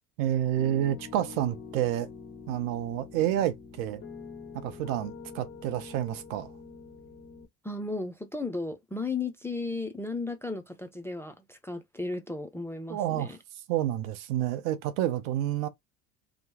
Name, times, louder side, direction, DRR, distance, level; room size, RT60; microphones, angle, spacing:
voice 1, 0.2-2.1 2.5-4.0 4.5-6.5 12.9-13.3 13.7-15.7, right 12 dB, 65° right, 0.7 m, -29 dB
Piano, 0.6-7.5, left 5 dB, 30° left, 0.9 m, -45 dB
voice 2, 7.6-13.4, left 3 dB, 5° left, 0.4 m, -35 dB
2.9 x 2.1 x 2.8 m
hypercardioid pair, 75°, 45 cm